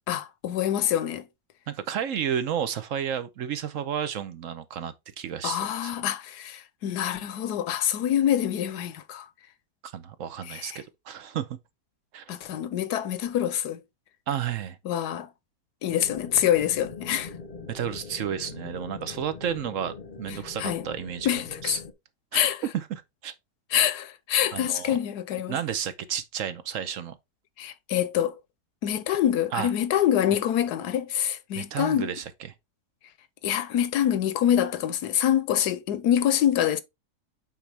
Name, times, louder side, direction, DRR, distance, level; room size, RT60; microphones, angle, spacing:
voice 1, 0.1-1.3 5.4-9.3 10.5-10.8 12.3-13.8 14.8-15.3 15.8-17.3 20.6-20.8 21.2-21.8 22.3-22.6 23.7-25.6 27.6-28.4 28.8-32.1 33.4-36.8, left 10 dB, 80° left, 1.3 m, -25 dB
voice 2, 1.7-5.9 9.8-11.5 12.1-12.2 14.3-14.8 17.7-21.3 21.6-21.8 22.3-23.3 24.5-25.0 25.5-27.2 29.5-29.7 31.5-32.2, right 9 dB, 60° right, 1.0 m, -32 dB
sound 1, 15.9-21.9, left 5 dB, 40° left, 0.9 m, -42 dB
8.0 x 4.4 x 3.3 m
omnidirectional pair, 1.7 m